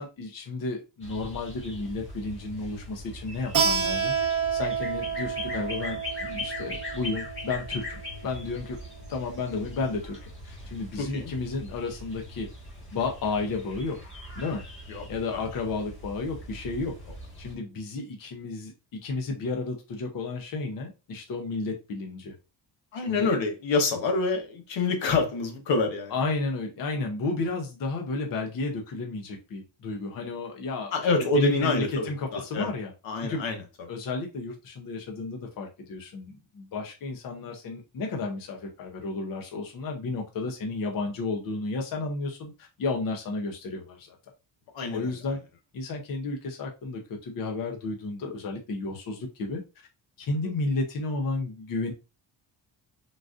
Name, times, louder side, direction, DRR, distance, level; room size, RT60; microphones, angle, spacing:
voice 1, 0.0-4.1 4.5-8.8 9.1-12.5 12.9-14.0 14.4-14.6 15.1-16.9 17.4-22.3 23.0-23.3 26.1-30.9 31.2-33.5 33.9-44.2 44.9-45.4 45.7-49.6 50.2-51.9, left 3 dB, 45° left, 0.7 m, -32 dB
sound 1, 1.0-17.6, left 2 dB, 25° left, 1.5 m, -41 dB
Keyboard (musical), 3.5-8.8, right 6 dB, 30° right, 0.8 m, -30 dB
voice 2, 11.0-11.3 14.9-15.1 15.3-15.4 22.9-26.1 30.9-32.7 33.0-33.6 44.7-45.1, left 3 dB, 80° left, 1.0 m, -26 dB
3.9 x 2.4 x 2.4 m
cardioid pair, 150°, 45 cm